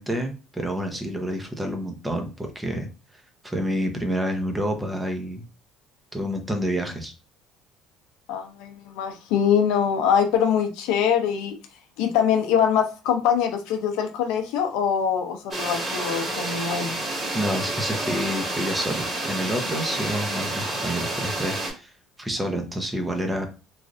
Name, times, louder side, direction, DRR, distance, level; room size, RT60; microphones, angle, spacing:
voice 1, 0.0-2.9 3.4-5.4 6.1-7.1 17.3-21.9 22.2-23.5, equal, 10° right, 0.7 m, -28 dB
voice 2, 8.3-11.5 12.0-17.0, left 8 dB, 85° left, 0.5 m, -23 dB
sound 1, 15.5-21.7, right 1 dB, 30° right, 1.3 m, -29 dB
3.2 x 2.4 x 2.5 m
cardioid pair, 115°, 0 cm